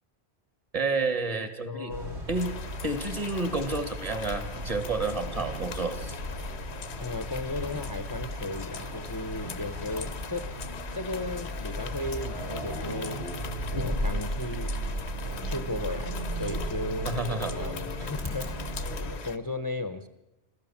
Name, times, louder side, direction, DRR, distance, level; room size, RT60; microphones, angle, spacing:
voice 1, 0.7-1.9 2.3-2.5 2.8-6.2 13.7-14.0 17.0-17.5, right 3 dB, 35° right, 9 dB, 2.1 m, -30 dB
voice 2, 1.6-2.2 7.0-10.5 10.9-13.4 13.7-14.7 15.5-17.1 17.6-20.1, left 2 dB, 20° left, 10 dB, 0.8 m, -35 dB
sound 1, 1.9-19.2, right 1 dB, 85° right, 4.7 m, -35 dB
sound 2, 2.3-19.4, left 7 dB, 80° left, 1.2 m, -42 dB
26.0 x 15.0 x 7.3 m, 0.95 s
omnidirectional pair, 1.1 m